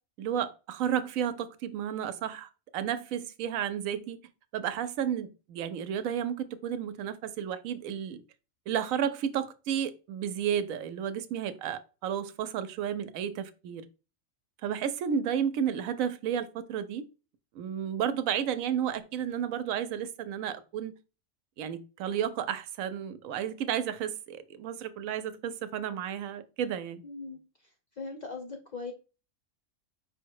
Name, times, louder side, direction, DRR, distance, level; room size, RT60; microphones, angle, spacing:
voice 1, 0.2-4.2 4.5-8.2 8.7-13.8 14.6-17.0 17.5-20.9 21.6-27.0, right 9 dB, 90° right, 1.0 m, -32 dB
voice 2, 27.0-27.4 28.0-28.9, left 4 dB, 55° left, 0.4 m, -39 dB
4.9 x 2.1 x 4.6 m
omnidirectional pair, 1.4 m